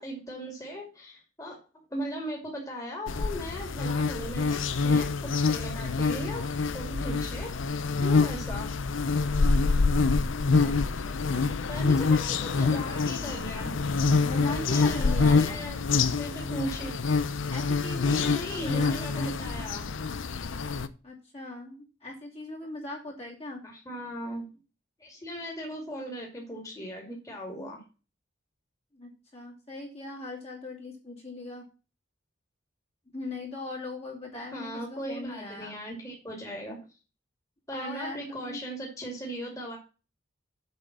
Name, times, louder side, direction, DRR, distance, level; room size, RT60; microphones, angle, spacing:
voice 1, 0.0-1.6 1.9-6.4 6.7-7.5 8.0-8.7 11.7-13.7 14.5-15.8 16.2-16.9 18.0-19.9 23.6-24.5 25.0-27.8 34.5-36.8 37.7-39.8, equal, 15° left, -2 dB, 2.5 m, -38 dB
sound 1, 3.1-20.9, left 4 dB, 80° left, 0.7 m, -26 dB
voice 2, 10.5-11.8 14.2-15.6 17.5-19.4 21.0-23.6 28.9-31.6 33.1-35.8 37.7-38.6, left 2 dB, 30° left, -2 dB, 2.7 m, -39 dB
7.7 x 5.4 x 7.3 m, 0.33 s
head